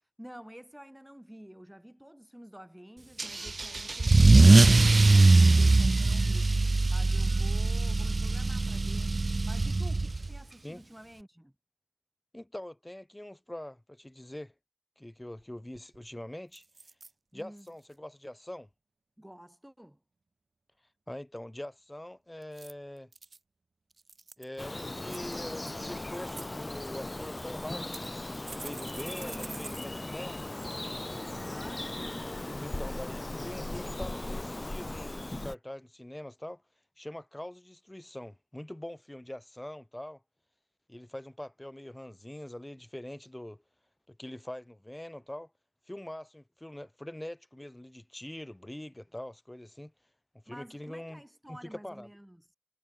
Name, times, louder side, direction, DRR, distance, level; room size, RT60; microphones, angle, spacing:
voice 1, 0.0-11.5 17.3-17.7 19.2-20.0 29.2-29.7 31.3-31.9 50.5-52.5, equal, 10° right, 4.5 m, -50 dB
Car / Engine starting / Accelerating revving vroom, 3.2-10.4, right 3 dB, 65° right, 0.3 m, -21 dB
voice 2, 12.3-14.5 15.0-16.6 17.3-18.7 21.1-23.1 24.4-28.0 28.5-30.7 32.6-36.6 37.0-40.2 40.9-43.6 44.1-45.5 45.9-49.9 50.3-51.2 51.5-52.1, left 1 dB, 20° left, 5.8 m, -43 dB
sound 1, 15.4-15.5 15.7-16.1 16.5-17.1 17.6-17.9 22.4-23.4 23.9-24.6 25.1-25.7 26.1-26.5 27.2-27.3 27.9-29.9 30.2-30.3 30.6-30.7, right 3 dB, 85° right, 1.2 m, -47 dB
Bird vocalization bird call bird song, 24.6-35.6, left 2 dB, 35° left, 1.4 m, -38 dB
wide cardioid pair, 60°, 0 cm